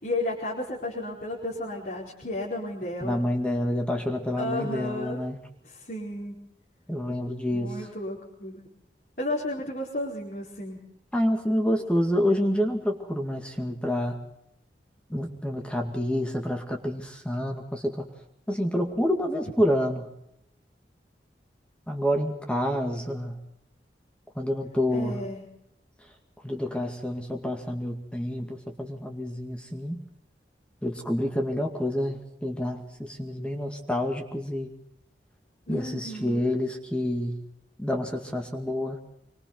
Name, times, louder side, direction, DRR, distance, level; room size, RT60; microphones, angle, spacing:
voice 1, 0.0-3.3 4.4-5.2 5.6-6.4 7.5-8.7 9.2-10.8 11.9-12.0 24.9-25.5 35.7-36.5, left 1 dB, 50° left, -4 dB, 4.6 m, -33 dB
voice 2, 3.0-5.4 6.9-7.7 11.1-14.2 15.1-18.1 18.5-20.1 21.9-23.4 24.4-25.2 26.4-30.0 30.8-34.7 35.7-37.4 37.8-39.0, equal, 5° left, 3 dB, 2.2 m, -28 dB
26.5 x 24.5 x 4.0 m, 0.76 s
head